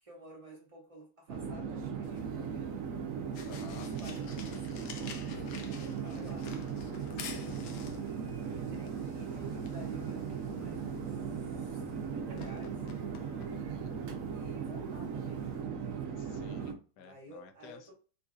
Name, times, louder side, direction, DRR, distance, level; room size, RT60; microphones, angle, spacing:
voice 1, 0.0-2.8 3.7-6.5 7.9-12.8 14.3-15.6 17.0-17.9, right 1 dB, 25° right, 0.9 m, -53 dB
Chatter / Fixed-wing aircraft airplane, 1.3-16.7, right 6 dB, 70° right, 0.8 m, -38 dB
sound 1, 2.0-15.6, left 6 dB, 85° left, 1.4 m, -51 dB
voice 2, 3.4-3.9 7.2-7.8 13.5-13.9 16.2-17.9, left 6 dB, 70° left, 0.9 m, -53 dB
4.0 x 2.6 x 2.3 m
omnidirectional pair, 2.0 m